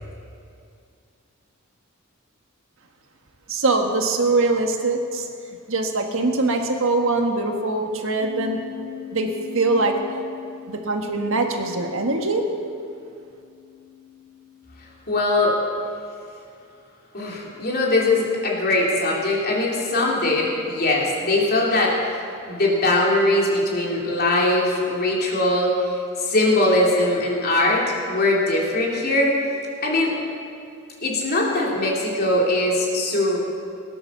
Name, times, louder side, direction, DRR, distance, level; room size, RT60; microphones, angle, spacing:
voice 1, 3.5-8.6 9.1-9.3 9.5-10.0 10.7-12.4, right 3 dB, 70° right, 3 dB, 1.5 m, -22 dB
sound 1, 8.2-15.2, left 11 dB, 75° left, 3.2 m, -40 dB
voice 2, 15.1-15.5 17.1-21.9 22.4-25.7 26.2-29.3 29.8-30.1 31.0-33.4, left 2 dB, 50° left, -3 dB, 3.1 m, -21 dB
18.5 x 9.8 x 6.9 m, 2.4 s
head